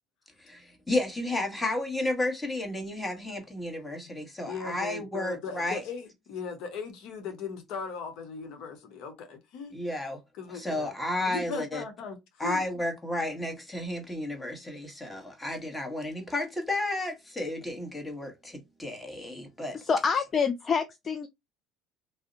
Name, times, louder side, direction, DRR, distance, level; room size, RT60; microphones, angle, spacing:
voice 1, 0.4-5.8 9.7-10.2 10.5-11.8 12.4-19.8, left 1 dB, 10° left, 1.3 m, -32 dB
voice 2, 4.5-9.8 10.4-10.9 11.2-12.6, left 5 dB, 65° left, 0.9 m, -38 dB
voice 3, 19.7-21.3, left 5 dB, 35° left, 0.4 m, -27 dB
2.7 x 2.1 x 3.8 m
supercardioid pair, 90°, 0 cm